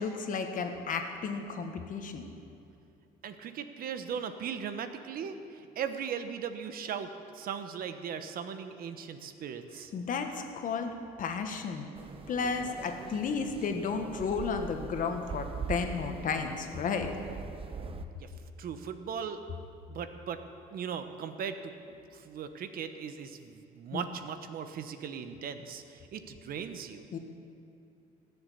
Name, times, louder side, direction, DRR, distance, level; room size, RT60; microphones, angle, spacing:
voice 1, 0.0-2.2 9.9-11.9 12.3-17.1 23.9-24.0 27.1-27.2, left 5 dB, 50° left, 5 dB, 1.5 m, -33 dB
voice 2, 3.2-9.9 18.1-18.3 18.6-19.4 19.9-20.4 20.7-21.7 22.1-27.0, right 7 dB, 60° right, 9 dB, 1.0 m, -38 dB
sound 1, 11.9-18.0, right 6 dB, 35° right, 0.8 m, -42 dB
18.5 x 7.0 x 8.5 m, 2.7 s
cardioid pair, 110°, 17 cm